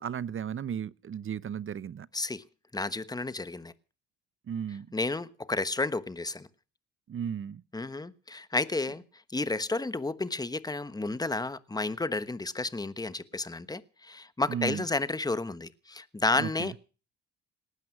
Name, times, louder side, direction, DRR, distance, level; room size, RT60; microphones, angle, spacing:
voice 1, 0.0-2.1 4.5-4.9 7.1-7.6 14.5-14.8 16.4-16.7, right 8 dB, 45° right, 0.7 m, -35 dB
voice 2, 2.1-2.4 2.7-3.7 4.9-6.5 7.7-9.0 9.3-16.8, left 3 dB, 15° left, 1.2 m, -31 dB
18.5 x 12.5 x 6.1 m
cardioid pair, 90°, 30 cm